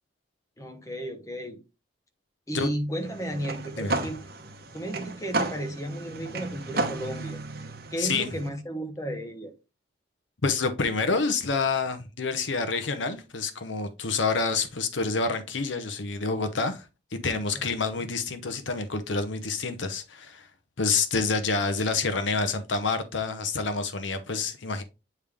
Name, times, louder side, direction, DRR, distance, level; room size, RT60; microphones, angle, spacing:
voice 1, 0.6-1.6 2.5-4.2 4.7-7.4 7.9-9.5 17.5-17.6, right 1 dB, 15° left, 1.0 m, -34 dB
sound 1, 3.0-8.5, right 2 dB, 55° right, 1.0 m, -33 dB
voice 2, 8.0-8.3 10.4-16.8 17.1-20.5 20.8-24.8, left 4 dB, 80° left, 0.9 m, -28 dB
8.5 x 3.4 x 3.5 m
head